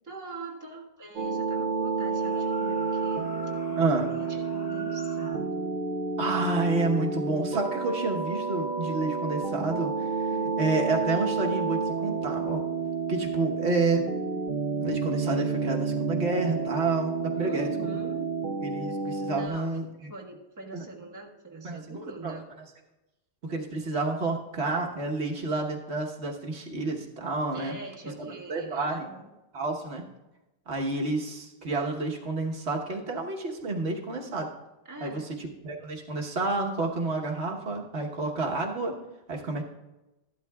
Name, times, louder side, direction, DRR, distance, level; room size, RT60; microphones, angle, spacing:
voice 1, 0.0-3.4 3.7-5.6 10.3-10.7 17.3-18.4 19.3-19.8 20.1-22.5 27.5-29.3 34.9-35.3, right 2 dB, 15° right, -2 dB, 1.3 m, -43 dB
sound 1, 1.2-19.5, right 4 dB, 55° right, 0.7 m, -30 dB
sound 2, 2.0-5.4, left 1 dB, 40° left, 1.5 m, -47 dB
voice 2, 3.7-4.1 6.2-12.6 13.1-14.0 14.8-18.0 18.6-20.1 20.7-20.8 21.6-22.4 23.4-27.7 28.5-29.1 29.5-30.0 30.7-34.5 35.0-39.0 39.3-39.6, right 3 dB, 85° right, 0 dB, 1.5 m, -30 dB
14.0 x 11.5 x 2.3 m, 1.0 s
omnidirectional pair, 1.1 m